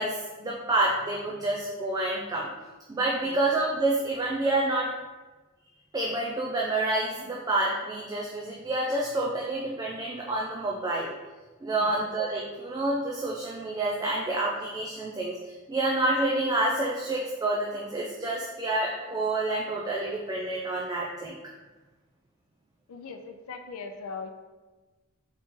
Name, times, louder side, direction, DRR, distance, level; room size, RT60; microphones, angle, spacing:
voice 1, 0.0-2.5 2.9-4.9 5.9-11.2 11.6-21.4, right 2 dB, 15° right, -3 dB, 0.3 m, -28 dB
voice 2, 22.9-24.3, left 4 dB, 85° left, 6 dB, 0.5 m, -40 dB
4.1 x 3.0 x 3.6 m, 1.2 s
head